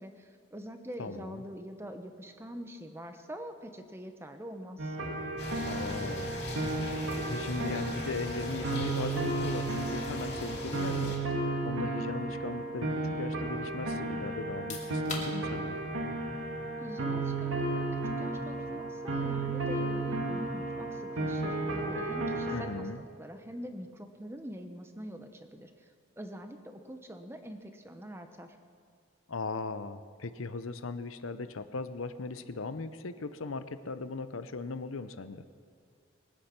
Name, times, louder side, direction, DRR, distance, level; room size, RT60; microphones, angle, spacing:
voice 1, 0.0-5.0 16.8-25.9 26.2-28.6, equal, 10° right, 6 dB, 0.9 m, -44 dB
voice 2, 1.0-1.4 5.6-6.4 6.8-15.8 22.5-23.0 29.3-35.4, left 3 dB, 85° left, 12 dB, 0.7 m, -38 dB
sound 1, 4.8-22.6, right 2 dB, 80° right, 2.3 m, -33 dB
sound 2, 5.4-11.2, left 1 dB, 55° left, 2.9 m, -40 dB
sound 3, 14.5-27.1, left 3 dB, 35° left, 2.4 m, -51 dB
21.5 x 9.9 x 6.0 m, 2.1 s
head